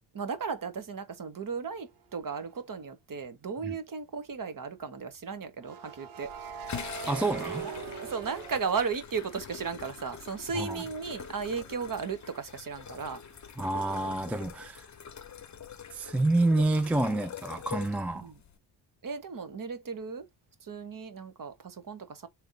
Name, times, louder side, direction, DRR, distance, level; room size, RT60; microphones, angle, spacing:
voice 1, 0.1-6.3 6.5-6.6 7.6-13.2 18.1-18.4 19.0-20.3 20.6-22.3, right 5 dB, 40° right, 1.1 m, -35 dB
sound 1, 2.3-2.5 5.6-9.5 9.9-13.5, right 6 dB, 85° right, 0.8 m, -43 dB
sound 2, 6.2-18.6, left 8 dB, 35° left, 0.8 m, -45 dB
voice 2, 7.1-7.7 10.5-10.8 13.6-14.9 15.9-18.3, right 2 dB, 5° right, 0.4 m, -28 dB
3.4 x 2.9 x 3.8 m
cardioid pair, 60°, 49 cm